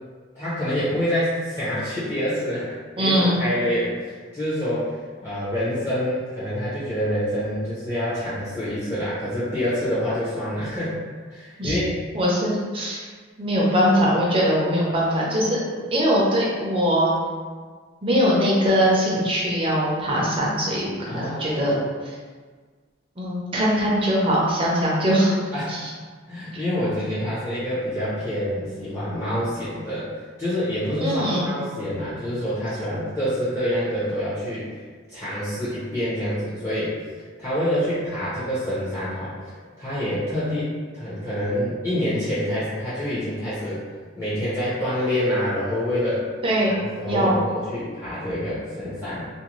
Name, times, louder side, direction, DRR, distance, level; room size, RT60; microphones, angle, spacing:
voice 1, 0.3-4.9 5.2-11.0 11.3-11.9 21.1-21.9 25.5-25.8 26.3-30.1 30.4-34.7 35.1-39.3 39.8-43.8 44.2-46.3 46.7-49.3, equal, 15° left, -12 dB, 0.6 m, -27 dB
voice 2, 3.0-3.4 11.6-11.8 12.1-13.0 13.4-15.6 15.9-17.1 18.0-21.7 23.2-25.4 25.7-25.9 31.0-31.4 46.4-46.7 47.1-47.4, equal, 25° right, -5 dB, 0.5 m, -21 dB
2.5 x 2.1 x 3.0 m, 1.5 s
head